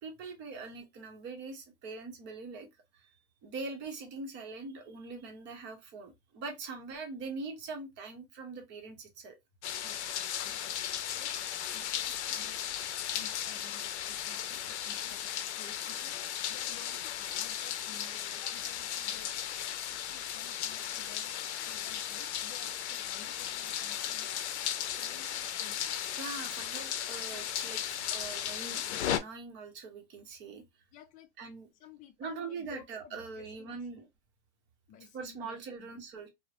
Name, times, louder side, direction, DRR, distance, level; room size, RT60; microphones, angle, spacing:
voice 1, 0.0-2.7 3.4-9.3 26.1-27.8 28.1-30.6 31.4-31.7 32.2-34.0 35.1-36.3, right 4 dB, 35° right, 0.8 m, -42 dB
sound 1, 9.6-29.2, left 10 dB, 90° left, 0.5 m, -36 dB
voice 2, 9.8-10.6 11.1-11.3 11.7-12.6 13.1-16.2 16.5-19.3 20.1-21.3 21.6-24.3 24.9-26.0 30.9-34.0 34.9-36.0, left 8 dB, 25° left, 0.4 m, -55 dB
3.0 x 2.0 x 2.4 m
supercardioid pair, 135°, 33 cm